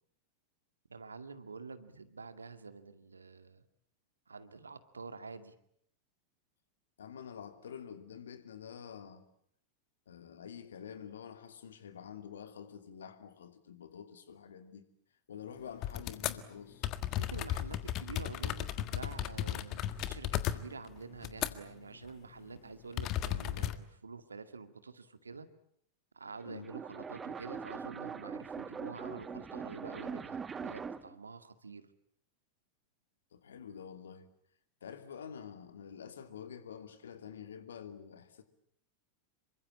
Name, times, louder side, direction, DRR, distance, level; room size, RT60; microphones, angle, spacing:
voice 1, 0.9-3.6 4.3-5.6 17.1-25.5 26.1-31.9, right 4 dB, 75° right, 2.0 m, -48 dB
voice 2, 7.0-9.2 10.1-14.8 15.3-16.9 26.5-26.7 33.3-34.3 34.8-38.4, left 8 dB, 65° left, 2.6 m, -48 dB
sound 1, 15.8-16.4 16.8-21.8 22.1-22.3 23.0-23.8, left 12 dB, 40° left, 1.6 m, -35 dB
sound 2, 26.4-31.2, right 6 dB, 20° right, 1.4 m, -42 dB
27.5 x 24.0 x 8.7 m
figure-of-eight pair, 90°, 0 cm